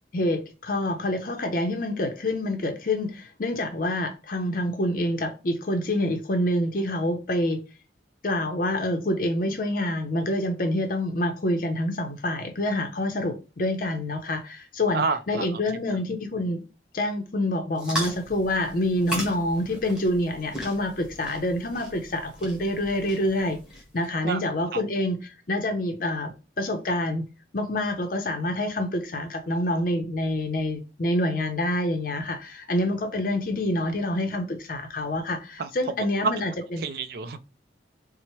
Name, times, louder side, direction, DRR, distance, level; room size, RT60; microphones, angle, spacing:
voice 1, 0.1-7.6 8.2-16.6 16.9-23.6 23.9-27.2 27.5-36.8, left 1 dB, 50° left, 0.5 m, -27 dB
voice 2, 14.9-15.5 24.2-24.4 24.7-24.8 35.6-35.7 36.8-37.4, right 5 dB, 55° right, 0.4 m, -29 dB
sound 1, 17.7-24.1, right 1 dB, 5° right, 1.1 m, -37 dB
4.3 x 2.0 x 2.9 m
head